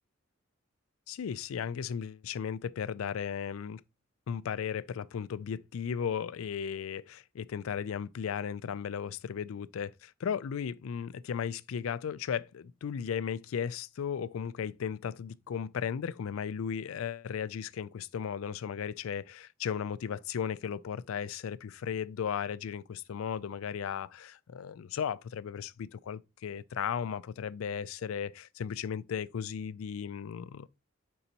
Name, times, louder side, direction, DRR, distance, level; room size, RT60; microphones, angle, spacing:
voice 1, 1.1-3.8 4.3-30.7, left 7 dB, 90° left, 0.4 m, -36 dB
6.7 x 5.5 x 2.9 m
head